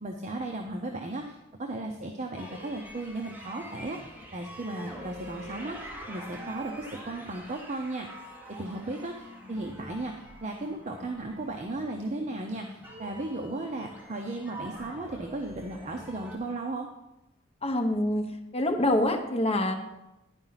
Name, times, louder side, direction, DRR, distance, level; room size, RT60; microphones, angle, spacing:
voice 1, 0.0-4.0 4.3-8.1 8.6-10.1 10.4-16.9, right 2 dB, 35° right, 2 dB, 0.6 m, -35 dB
sound 1, 2.4-16.4, right 1 dB, 10° right, 1.1 m, -45 dB
voice 2, 17.6-18.2 18.5-19.7, left 1 dB, 30° left, 4 dB, 0.9 m, -25 dB
10.5 x 4.9 x 5.6 m, 0.94 s
head